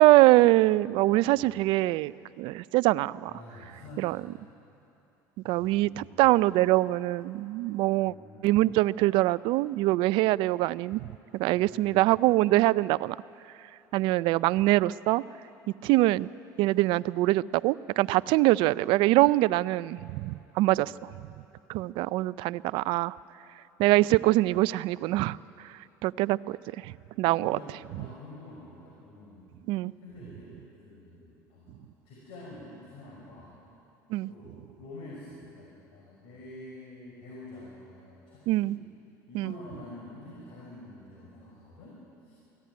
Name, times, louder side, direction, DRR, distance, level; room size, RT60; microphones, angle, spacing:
voice 1, 0.0-3.3 4.0-4.2 5.4-8.1 8.4-11.1 11.3-13.2 13.9-15.2 15.8-16.3 16.6-21.1 21.7-23.2 23.8-25.4 25.6-27.6 29.7-29.9 34.1-34.3 38.5-38.8 39.3-39.5, right 18 dB, 70° right, 19 dB, 0.5 m, -24 dB
voice 2, 3.2-4.3 5.4-6.2 7.9-8.8 11.5-12.2 20.8-21.1 27.4-29.4 30.0-33.6 34.3-38.8 39.3-42.3, left 1 dB, 70° left, -4 dB, 6.0 m, -47 dB
23.5 x 16.0 x 9.5 m, 2.8 s
supercardioid pair, 85°, 9 cm